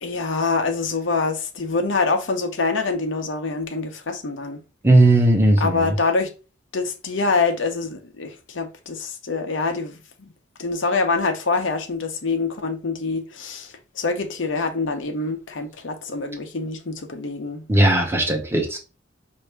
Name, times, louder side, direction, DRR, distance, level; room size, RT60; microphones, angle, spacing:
voice 1, 0.0-4.6 5.6-6.3 6.7-10.3 10.6-17.6, left 4 dB, 75° left, 0.8 m, -25 dB
voice 2, 4.8-5.9 17.7-18.8, right 1 dB, 15° right, 1.0 m, -17 dB
5.5 x 2.7 x 3.4 m
head